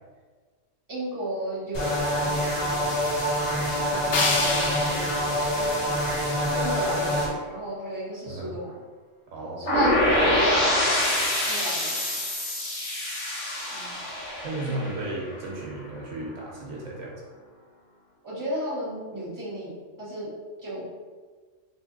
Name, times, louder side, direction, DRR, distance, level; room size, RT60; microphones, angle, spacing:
voice 1, 0.9-1.9 2.2-2.9 3.9-6.1 6.5-8.8 9.6-10.7 11.5-12.1 13.7-13.9 14.6-14.8 18.2-19.7 20.0-20.3 20.6-20.8, right 1 dB, 15° right, -9 dB, 1.4 m, -34 dB
sound 1, 1.7-7.3, equal, 35° left, 1.2 m, -26 dB
sound 2, 4.1-7.1, left 3 dB, 80° left, 1.1 m, -30 dB
voice 2, 9.3-9.7 14.4-17.2, right 2 dB, 85° right, -3 dB, 1.3 m, -34 dB
sound 3, 9.7-15.5, left 1 dB, 60° left, 1.4 m, -25 dB
3.6 x 2.7 x 3.9 m, 1.4 s
omnidirectional pair, 1.3 m